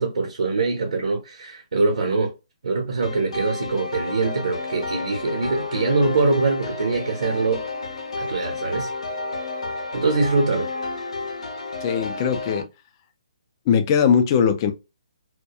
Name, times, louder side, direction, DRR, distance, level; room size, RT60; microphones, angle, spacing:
voice 1, 0.0-2.3 2.6-7.6 8.2-8.9 9.9-10.7, right 3 dB, 70° right, 0.8 m, -23 dB
sound 1, 3.0-12.6, left 3 dB, 70° left, 0.7 m, -31 dB
voice 2, 11.8-12.7 13.7-14.7, left 7 dB, 30° left, 0.4 m, -20 dB
2.3 x 2.2 x 2.7 m
hypercardioid pair, 145°, 4 cm